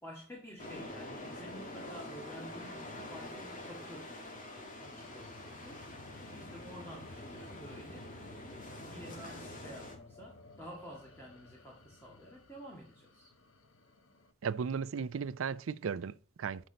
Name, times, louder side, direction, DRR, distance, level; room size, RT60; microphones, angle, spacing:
voice 1, 0.0-4.3 4.8-8.2 8.9-13.3, equal, 10° left, 1.8 m, -51 dB
sound 1, 0.6-10.0, left 1 dB, 40° left, 2.0 m, -46 dB
sound 2, 4.6-14.3, left 2 dB, 85° left, 1.0 m, -56 dB
voice 2, 14.4-16.7, right 6 dB, 75° right, 0.4 m, -36 dB
7.7 x 6.0 x 4.0 m
head